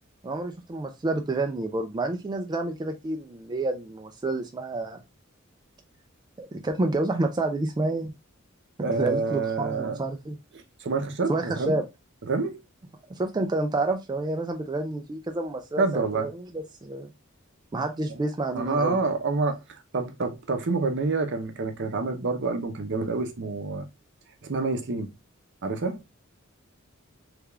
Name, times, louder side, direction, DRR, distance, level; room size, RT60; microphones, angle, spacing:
voice 1, 0.2-5.0 6.4-8.1 8.9-10.4 11.3-11.8 13.1-17.1 17.7-19.0, right 2 dB, 20° right, 0.3 m, -29 dB
voice 2, 8.8-10.0 10.8-11.8 12.3-12.6 15.8-16.3 18.1-18.2 18.5-23.8 24.4-25.1 25.6-26.0, right 3 dB, 60° right, 0.7 m, -27 dB
3.4 x 3.3 x 2.3 m
head